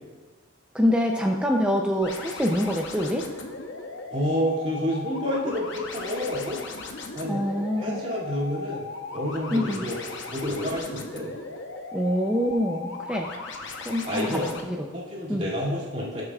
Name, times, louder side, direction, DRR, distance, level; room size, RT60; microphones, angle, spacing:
voice 1, 0.7-3.3 7.3-8.0 9.5-9.8 11.9-13.3 13.8-14.4 14.8-14.9 15.3-15.4, equal, 5° right, 1 dB, 0.5 m, -25 dB
sound 1, 2.0-14.6, left 3 dB, 60° left, 0.9 m, -38 dB
voice 2, 4.1-6.6 7.1-7.4 7.8-8.8 9.1-11.3 14.1-14.5 14.9-16.2, equal, 35° right, -8 dB, 2.5 m, -29 dB
19.5 x 6.6 x 2.4 m, 1.3 s
head